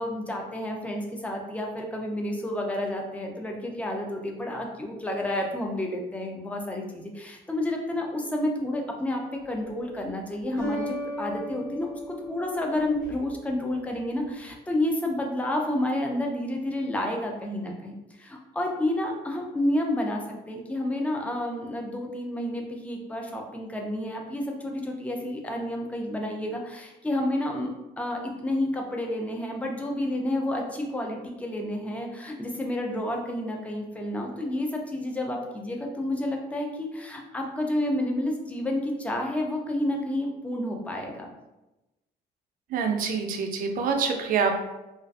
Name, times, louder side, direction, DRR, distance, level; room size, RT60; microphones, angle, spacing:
voice 1, 0.0-27.7 28.0-41.3, left 1 dB, 10° left, 1 dB, 0.4 m, -30 dB
sound 1, 9.4-9.9 10.6-13.5, equal, 65° left, 1.1 m, -36 dB
voice 2, 42.7-44.6, right 5 dB, 55° right, 4 dB, 0.4 m, -26 dB
2.5 x 2.3 x 2.3 m, 0.99 s
cardioid pair, 110°, 17 cm